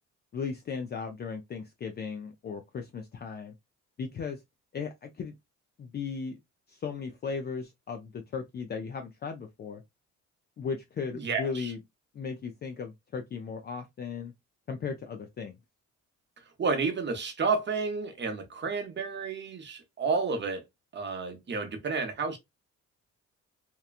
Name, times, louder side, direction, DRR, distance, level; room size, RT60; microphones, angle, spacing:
voice 1, 0.3-3.5 4.0-4.4 4.7-5.4 5.8-6.4 6.7-9.8 10.6-11.8 12.1-14.3 14.7-15.5, left 5 dB, 35° left, 0.4 m, -36 dB
voice 2, 11.1-11.7 16.6-20.6 20.9-22.4, right 4 dB, 35° right, 0.8 m, -31 dB
2.9 x 2.2 x 2.4 m
cardioid pair, 90°, 30 cm